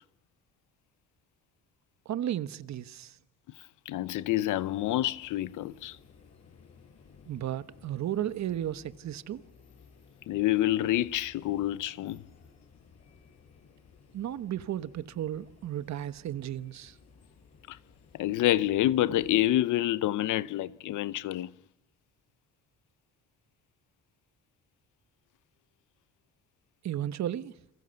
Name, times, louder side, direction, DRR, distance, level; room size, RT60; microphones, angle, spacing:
voice 1, 2.0-3.2 7.3-9.4 14.1-17.0 26.8-27.5, right 11 dB, 65° right, 1.2 m, -34 dB
voice 2, 3.9-6.0 10.3-12.2 17.7-17.8 18.1-21.5, left 14 dB, 80° left, 0.9 m, -27 dB
sound 1, 4.1-19.5, left 5 dB, 60° left, 7.7 m, -58 dB
30.0 x 23.0 x 6.9 m
cardioid pair, 90°, 30 cm